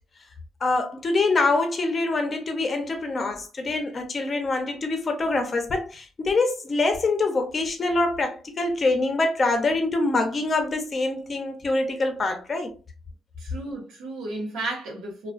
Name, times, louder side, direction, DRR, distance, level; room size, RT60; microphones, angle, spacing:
voice 1, 0.6-12.7, left 3 dB, 40° left, 0.7 m, -25 dB
voice 2, 13.4-15.3, right 2 dB, 90° right, 0.9 m, -33 dB
2.3 x 2.3 x 2.4 m
cardioid pair, 90°, 0 cm